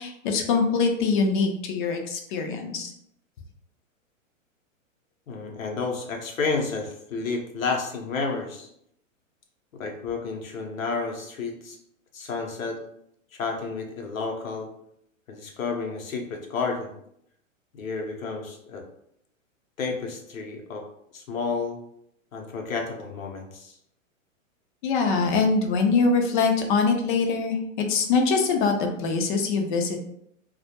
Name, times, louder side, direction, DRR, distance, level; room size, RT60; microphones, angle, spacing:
voice 1, 0.0-2.9 24.8-30.0, left 4 dB, 40° left, 4 dB, 0.4 m, -23 dB
voice 2, 5.3-8.7 9.7-11.8 12.1-12.8 13.3-14.7 15.3-16.9 17.7-18.8 19.8-20.8 21.1-21.8 22.3-23.8, left 4 dB, 85° left, 2 dB, 0.7 m, -31 dB
2.2 x 2.0 x 2.8 m, 0.73 s
hypercardioid pair, 125°, 40 cm